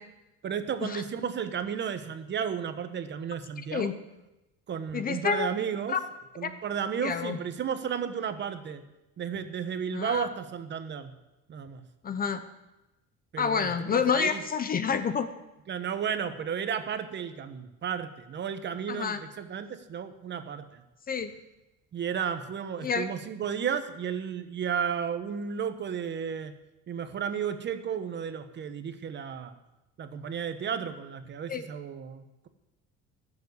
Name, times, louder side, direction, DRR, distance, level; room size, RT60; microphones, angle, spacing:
voice 1, 0.4-3.9 4.7-6.0 6.4-8.8 9.2-11.1 11.5-11.8 13.3-14.4 15.7-20.8 21.9-26.5 26.9-29.5 30.0-32.2, right 7 dB, 35° right, 10 dB, 1.1 m, -33 dB
voice 2, 4.9-5.5 5.9-6.0 7.0-7.4 9.9-10.3 12.0-12.4 13.4-15.3 18.9-19.2 21.1-21.3 22.8-23.1 31.5-31.7, left 6 dB, 30° left, 11 dB, 0.9 m, -28 dB
17.0 x 7.5 x 8.2 m, 0.96 s
cardioid pair, 150°, 31 cm